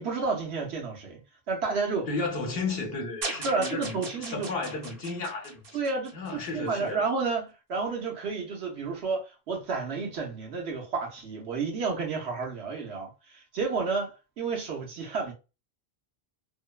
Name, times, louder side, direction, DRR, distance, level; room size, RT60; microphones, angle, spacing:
voice 1, 0.0-2.1 3.4-4.5 5.7-15.3, right 4 dB, 90° right, 1.1 m, -31 dB
voice 2, 2.1-5.6 6.1-7.0, left 3 dB, 65° left, 1.0 m, -33 dB
sound 1, 3.2-6.5, right 3 dB, 60° right, 0.8 m, -38 dB
2.9 x 2.0 x 2.2 m
omnidirectional pair, 1.1 m